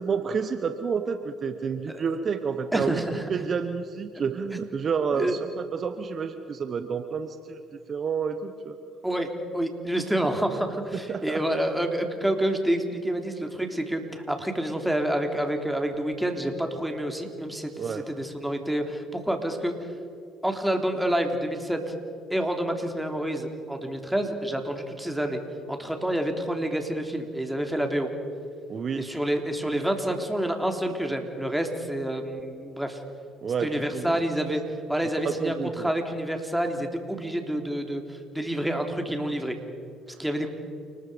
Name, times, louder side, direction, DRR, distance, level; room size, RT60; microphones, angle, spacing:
voice 1, 0.0-3.0 3.3-7.6 7.9-8.8 10.9-11.4 17.8-18.0 28.7-29.1 33.4-34.2 35.2-35.9, right 6 dB, 50° right, 9 dB, 1.1 m, -29 dB
voice 2, 2.7-3.2 5.2-5.3 9.0-14.0 14.3-19.7 20.4-21.9 22.3-25.4 25.7-28.1 29.0-33.0 33.6-34.6 34.9-39.6 40.2-40.5, right 1 dB, 5° right, 4 dB, 3.4 m, -28 dB
29.5 x 20.0 x 5.2 m, 2.5 s
hypercardioid pair, 55°, 0 cm